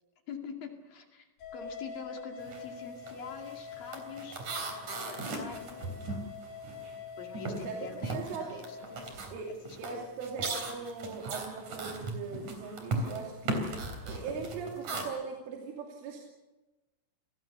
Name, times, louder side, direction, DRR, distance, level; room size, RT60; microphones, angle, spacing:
voice 1, 0.3-4.4 5.1-5.8 7.2-9.1 9.9-10.1, left 5 dB, 55° left, 3 dB, 3.7 m, -45 dB
sound 1, 1.4-9.1, left 6 dB, 70° left, 4.9 m, -45 dB
sound 2, 2.4-2.7 3.0-7.0 7.3-15.0, right 2 dB, 40° right, 4.4 m, -37 dB
voice 2, 8.1-8.6 9.3-13.7 14.0-16.2, right 5 dB, 85° right, 0 dB, 5.3 m, -40 dB
28.5 x 20.0 x 6.7 m, 1.1 s
omnidirectional pair, 5.5 m